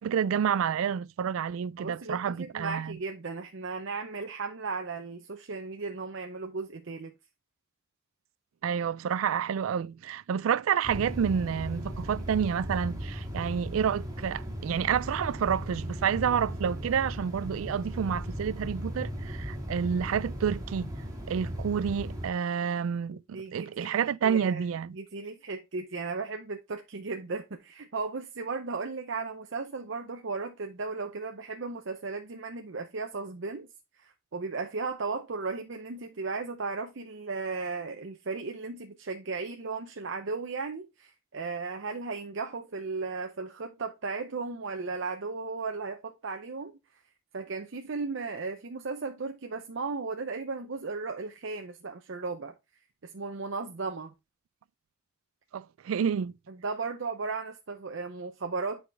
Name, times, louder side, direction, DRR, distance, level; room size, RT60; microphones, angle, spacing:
voice 1, 0.0-3.0 8.6-20.9 21.3-25.0 55.5-56.3, right 7 dB, 90° right, 0.3 m, -29 dB
voice 2, 1.8-7.1 23.3-24.6 24.9-33.7 34.0-46.7 47.3-52.6 53.0-54.1 56.6-58.9, right 4 dB, 65° right, 0.7 m, -36 dB
sound 1, 10.8-22.3, equal, 20° right, 2.4 m, -37 dB
8.4 x 5.0 x 3.2 m
head